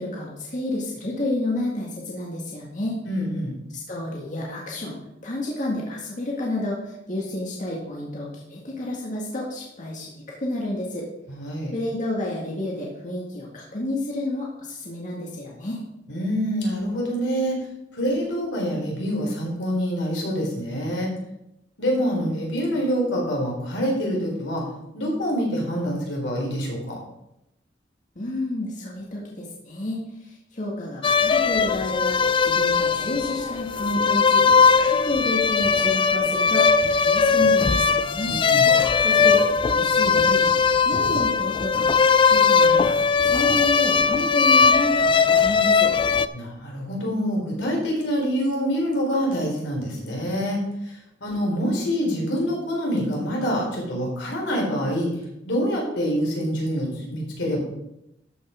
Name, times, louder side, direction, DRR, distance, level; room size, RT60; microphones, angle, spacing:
voice 1, 0.0-3.0 3.7-5.0 5.2-11.1 11.7-15.8 28.2-38.4 39.0-45.9, left 1 dB, 45° left, -3 dB, 1.9 m, -30 dB
voice 2, 3.1-3.5 11.3-11.7 16.1-17.6 17.9-21.1 21.8-24.6 24.9-27.0 38.3-38.7 46.3-50.6 51.2-55.1 55.5-57.6, equal, 85° left, -2 dB, 3.9 m, -26 dB
sound 1, 31.0-46.3, left 5 dB, 30° left, 0.4 m, -19 dB
13.0 x 5.7 x 5.0 m, 0.85 s
head